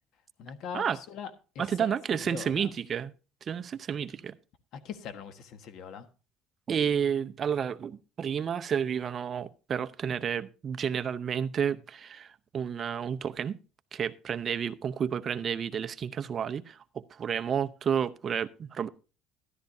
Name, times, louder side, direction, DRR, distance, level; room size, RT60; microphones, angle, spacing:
voice 1, 0.4-1.3 1.5-1.9 2.2-2.7 4.7-6.1, left 7 dB, 60° left, 1.4 m, -41 dB
voice 2, 1.6-3.1 3.4-4.3 6.7-13.6 13.9-18.9, right 8 dB, 35° right, 0.7 m, -31 dB
13.5 x 11.5 x 2.7 m
cardioid pair, 120°, 0 cm